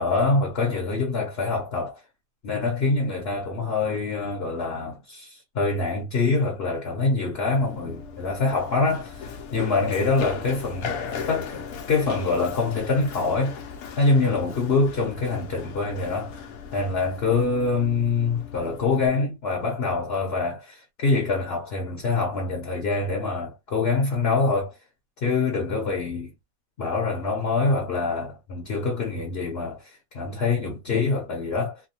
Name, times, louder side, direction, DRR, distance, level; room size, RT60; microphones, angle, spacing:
voice 1, 0.0-2.0 2.4-10.9 11.3-13.6 14.0-16.4 16.7-24.8 25.2-26.3 26.8-31.8, left 3 dB, 50° left, 0.9 m, -25 dB
Run, 7.5-19.1, left 6 dB, 80° left, 1.1 m, -37 dB
3.4 x 2.2 x 2.7 m
omnidirectional pair, 1.5 m